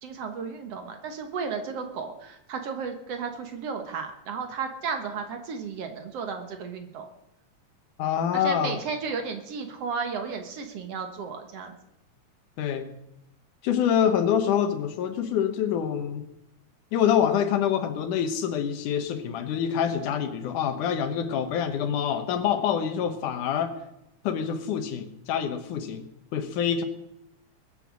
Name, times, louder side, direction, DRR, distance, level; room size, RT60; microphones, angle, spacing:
voice 1, 0.0-7.1 8.3-11.8, right 5 dB, 60° right, 6 dB, 2.0 m, -34 dB
voice 2, 8.0-8.8 12.6-12.9 13.6-16.2 16.9-23.7 24.2-26.0 26.3-26.8, left 8 dB, 80° left, 9 dB, 2.7 m, -26 dB
21.0 x 7.8 x 6.2 m, 0.86 s
omnidirectional pair, 3.5 m